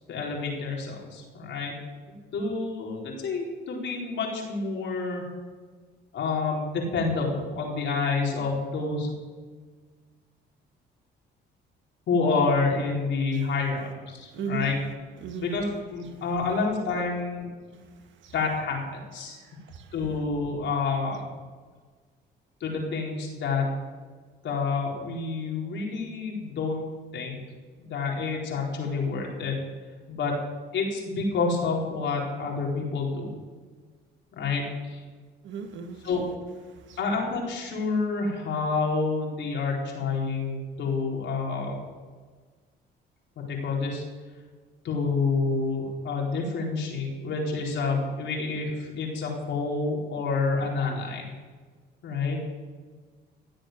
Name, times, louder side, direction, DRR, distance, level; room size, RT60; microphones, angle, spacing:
voice 1, 0.1-1.7 2.3-5.2 6.1-9.1 12.1-14.7 15.4-15.6 15.9-17.5 18.3-19.4 19.9-21.2 22.6-23.6 24.4-26.9 27.1-27.4 27.8-29.5 30.1-30.3 30.7-33.3 34.3-35.0 36.0-36.3 37.0-41.8 43.5-44.0 44.8-51.3 52.0-52.4, left 4 dB, 70° left, -1 dB, 4.4 m, -28 dB
voice 2, 14.3-14.7 15.2-15.5 16.1-16.2 18.2-18.3 19.2-19.9 35.4-36.0 36.7-37.0, right 6 dB, 70° right, 7 dB, 1.8 m, -37 dB
17.0 x 7.9 x 7.7 m, 1.5 s
cardioid pair, 85°, 20 cm